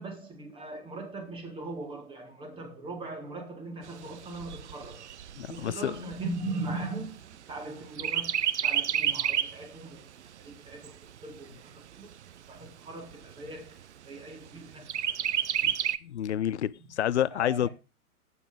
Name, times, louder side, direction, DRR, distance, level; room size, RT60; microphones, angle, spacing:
voice 1, 0.0-5.1 5.5-7.2 7.5-10.9 11.2-12.1 12.5-13.8 14.0-15.1 17.3-17.7, right 2 dB, 10° right, 1.9 m, -39 dB
Chirp tweet, 3.8-7.6 8.0-9.6 10.1-10.2 10.5-11.5 12.1-12.2 12.6-12.7 13.1-13.6 14.9-16.0, right 10 dB, 50° right, 0.6 m, -30 dB
voice 2, 5.4-6.1 15.6-15.7 16.0-17.7, left 10 dB, 50° left, 0.5 m, -29 dB
8.1 x 6.9 x 5.0 m
figure-of-eight pair, 120°, 44 cm